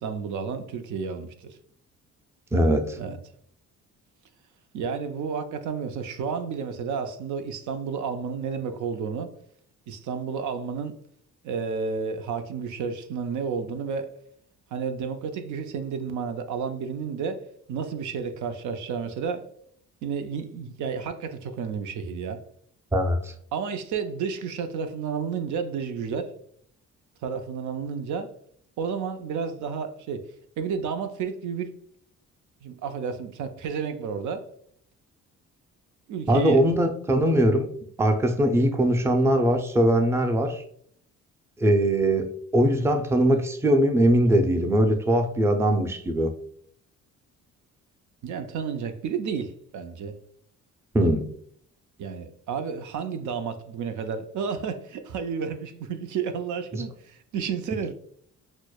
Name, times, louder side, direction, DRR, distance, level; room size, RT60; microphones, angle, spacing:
voice 1, 0.0-1.6 3.0-3.2 4.7-9.3 9.9-11.0 11.4-14.1 14.7-17.4 17.7-19.4 20.0-22.4 23.5-26.3 27.2-28.3 28.8-30.2 30.6-31.8 32.6-34.4 36.1-36.6 48.2-50.2 52.0-57.9, right 6 dB, 75° right, 0.5 m, -31 dB
voice 2, 2.5-3.0 22.9-23.3 36.3-37.7 38.0-40.6 41.6-42.3 42.5-46.3 50.9-51.3 56.7-56.8, right 1 dB, 10° right, 0.4 m, -21 dB
6.2 x 2.1 x 2.3 m
cardioid pair, 90°, 30 cm